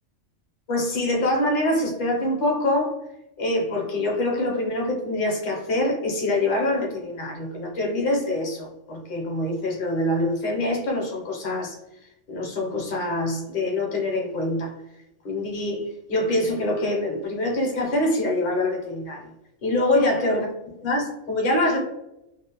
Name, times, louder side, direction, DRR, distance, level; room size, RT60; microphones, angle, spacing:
voice 1, 0.7-2.9 3.4-11.8 12.3-14.7 15.2-19.3 19.6-20.5 20.8-21.8, left 1 dB, 50° left, -1 dB, 0.7 m, -25 dB
2.5 x 2.0 x 2.8 m, 0.87 s
omnidirectional pair, 1.3 m